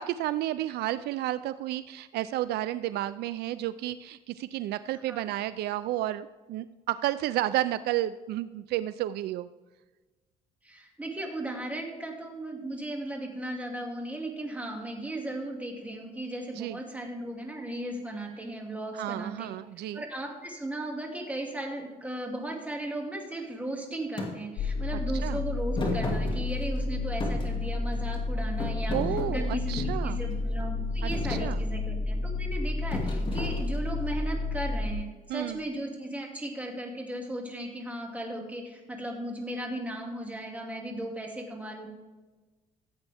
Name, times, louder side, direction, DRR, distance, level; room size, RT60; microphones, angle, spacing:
voice 1, 0.0-9.5 16.6-16.8 18.9-20.0 25.2-25.4 28.9-30.2 31.0-31.6 35.3-35.6, right 14 dB, 75° right, 14 dB, 0.4 m, -31 dB
voice 2, 10.6-19.5 19.9-29.0 29.3-41.9, right 1 dB, 10° right, 1 dB, 2.3 m, -36 dB
Thump thud, 24.2-24.3 25.8-26.8 27.2-28.2 28.6-30.0 30.6-30.8 31.1-31.5 32.9-34.0, left 2 dB, 30° left, 2.4 m, -33 dB
sound 1, 24.6-34.9, left 2 dB, 65° left, 0.9 m, -31 dB
15.0 x 8.1 x 3.5 m, 1.2 s
cardioid pair, 110°, 17 cm